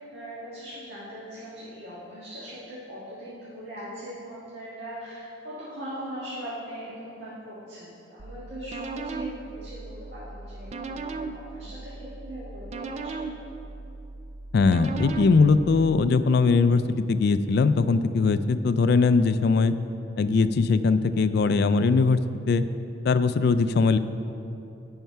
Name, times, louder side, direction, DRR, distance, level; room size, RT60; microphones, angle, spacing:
voice 1, 0.1-13.3, equal, 60° right, -9 dB, 1.7 m, -40 dB
sound 1, 8.2-16.1, right 3 dB, 35° right, 0.3 m, -37 dB
voice 2, 14.5-19.7 20.2-22.2 22.5-22.6 23.0-24.0, left 4 dB, 55° left, 12 dB, 0.3 m, -21 dB
9.2 x 5.6 x 5.5 m, 2.8 s
head